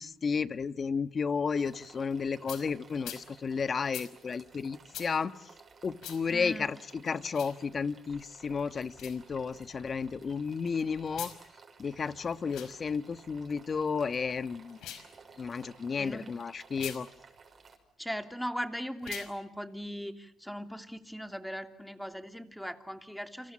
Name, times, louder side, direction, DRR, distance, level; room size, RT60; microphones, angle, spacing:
voice 1, 0.0-5.3 5.8-11.3 11.8-14.8 15.4-17.1, left 5 dB, 40° left, 1.4 m, -32 dB
sound 1, 1.5-17.8, right 5 dB, 40° right, 6.5 m, -56 dB
sound 2, 2.5-2.6 3.0-3.2 3.9-4.1 4.9-5.1 6.0-6.2 7.3-7.5 8.9-9.2 11.1-11.4 12.4-12.7 14.7-15.1 16.7-17.0 19.0-19.3, left 11 dB, 85° left, 5.1 m, -42 dB
voice 2, 6.3-6.7 16.0-16.4 18.0-23.5, equal, ahead, 2.9 m, -39 dB
29.5 x 26.5 x 7.4 m
cardioid pair, 90°, 0 cm